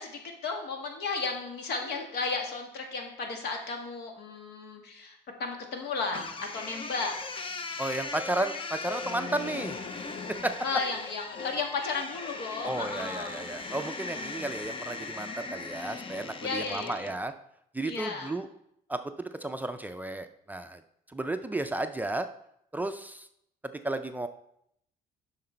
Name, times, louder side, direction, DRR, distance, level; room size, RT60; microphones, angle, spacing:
voice 1, 0.0-7.2 7.7-7.8 10.6-13.5 16.4-17.1 17.8-18.4, left 4 dB, 75° left, 3 dB, 1.5 m, -34 dB
sound 1, 6.1-17.2, left 4 dB, 30° left, 0.7 m, -39 dB
voice 2, 7.8-9.8 10.3-10.6 12.6-17.3 17.7-18.5 18.9-20.8 21.1-22.3 22.7-23.3 23.8-24.3, right 2 dB, 10° right, 7 dB, 0.4 m, -33 dB
7.7 x 5.8 x 4.3 m, 0.75 s
cardioid pair, 110°, 17 cm